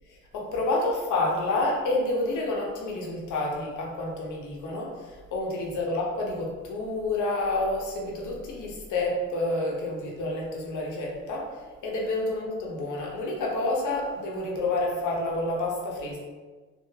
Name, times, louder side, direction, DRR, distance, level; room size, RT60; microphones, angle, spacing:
voice 1, 0.3-11.5 11.8-16.2, left 2 dB, 80° left, -2 dB, 0.9 m, -29 dB
3.4 x 2.0 x 3.2 m, 1.4 s
cardioid pair, 90°, 30 cm